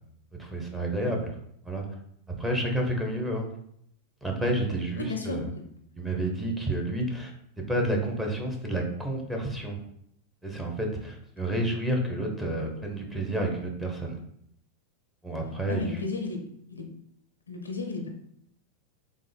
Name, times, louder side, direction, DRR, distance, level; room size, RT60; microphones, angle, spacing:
voice 1, 0.4-1.4 1.6-1.8 2.4-3.5 4.2-5.5 6.0-7.3 7.6-9.8 10.4-14.2 15.2-15.9, right 1 dB, 10° right, 0 dB, 0.9 m, -30 dB
voice 2, 5.0-5.6 15.7-16.4 16.7-16.9 17.5-18.1, left 3 dB, 90° left, 4 dB, 0.5 m, -33 dB
3.4 x 2.1 x 3.4 m, 0.71 s
hypercardioid pair, 95°, 0 cm